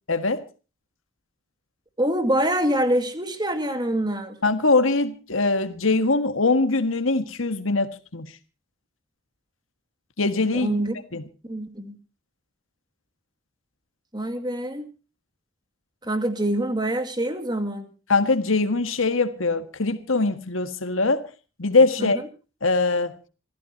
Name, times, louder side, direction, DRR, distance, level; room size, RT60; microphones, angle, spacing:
voice 1, 0.1-0.4 4.4-8.3 10.2-10.7 11.1-11.2 18.1-21.3 21.6-22.2 22.6-23.1, left 3 dB, 85° left, 1.7 m, -22 dB
voice 2, 2.0-4.4 10.5-11.0 11.4-12.0 14.1-14.9 16.0-17.8 22.0-22.2, right 1 dB, 20° right, 2.3 m, -25 dB
27.0 x 15.0 x 2.8 m
head